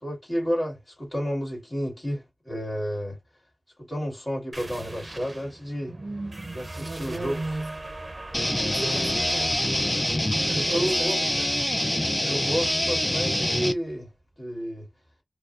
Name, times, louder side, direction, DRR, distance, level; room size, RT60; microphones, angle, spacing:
voice 1, 0.0-3.2 3.8-5.9 6.5-7.4 10.5-11.2 12.2-14.1 14.4-14.9, equal, 40° left, 1.8 m, -31 dB
sound 1, 4.5-13.7, right 2 dB, 40° right, 0.6 m, -42 dB
voice 2, 5.9-7.9 8.6-9.7 10.3-11.7, right 2 dB, 85° right, 0.6 m, -36 dB
sound 2, 8.3-13.7, left 1 dB, 15° left, 0.5 m, -25 dB
4.5 x 2.1 x 2.4 m
wide cardioid pair, 65°, 0 cm